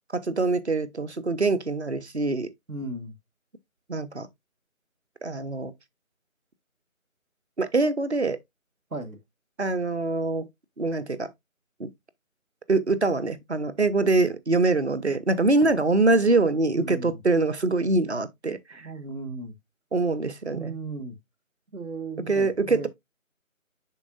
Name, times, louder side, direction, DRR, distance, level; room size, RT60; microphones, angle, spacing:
voice 1, 0.1-2.5 3.9-4.3 5.2-5.7 7.6-8.4 9.6-10.5 10.8-11.3 11.8-11.9 12.7-18.9 19.9-20.7 22.3-22.9, right 3 dB, 50° right, 0.9 m, -24 dB
voice 2, 2.7-3.2 8.9-9.2 16.7-17.2 18.7-19.5 20.5-21.2 21.7-22.9, right 3 dB, 80° right, 1.9 m, -36 dB
7.0 x 5.4 x 2.6 m
figure-of-eight pair, 170°, 42 cm